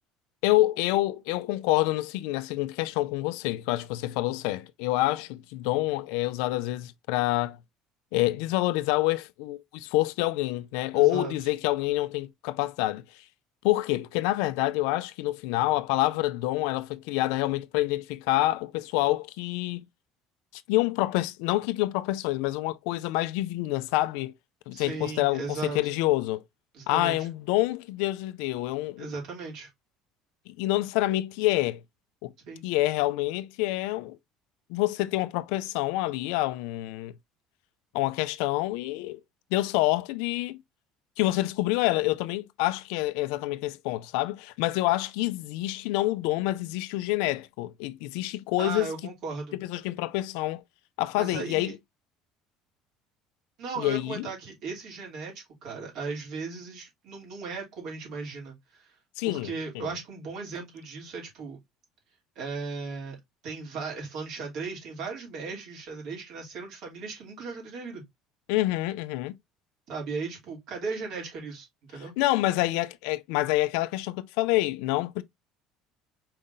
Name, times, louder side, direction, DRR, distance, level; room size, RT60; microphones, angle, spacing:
voice 1, 0.4-7.6 8.1-13.0 13.6-19.8 20.5-24.3 24.7-26.4 26.9-29.1 30.5-31.8 32.2-32.3 32.6-34.2 34.7-37.1 37.9-39.2 39.5-40.6 41.2-48.9 49.6-50.6 51.0-51.7 53.8-54.3 59.2-59.9 68.5-69.4 72.2-75.2, left 17 dB, 80° left, 0.4 m, -27 dB
voice 2, 10.9-11.3 24.7-25.9 26.7-27.3 29.0-29.7 32.4-32.7 48.6-49.6 51.2-51.7 53.6-58.9 59.2-61.6 62.3-63.2 63.4-68.0 69.9-72.1, right 4 dB, 65° right, 2.9 m, -37 dB
4.7 x 3.7 x 2.6 m
supercardioid pair, 90°, 0 cm